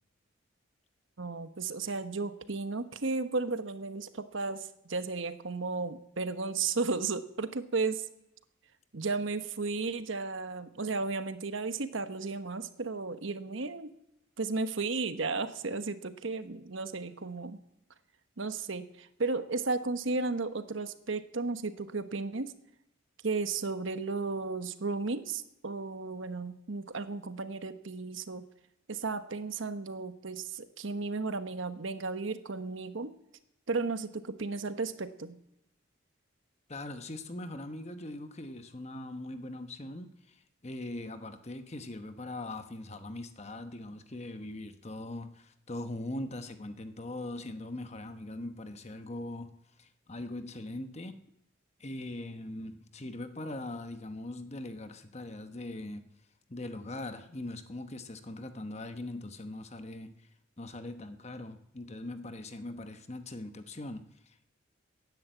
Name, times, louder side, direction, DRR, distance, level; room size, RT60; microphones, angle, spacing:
voice 1, 1.2-8.0 8.9-13.9 14.4-17.6 18.4-22.5 23.2-28.5 28.9-33.1 33.7-35.4, right 3 dB, 70° right, 11 dB, 1.0 m, -34 dB
voice 2, 36.7-49.5 49.8-51.2 51.8-56.0 56.5-60.1 60.6-64.5, left 1 dB, 30° left, 9 dB, 1.0 m, -41 dB
15.5 x 10.5 x 8.2 m, 0.82 s
head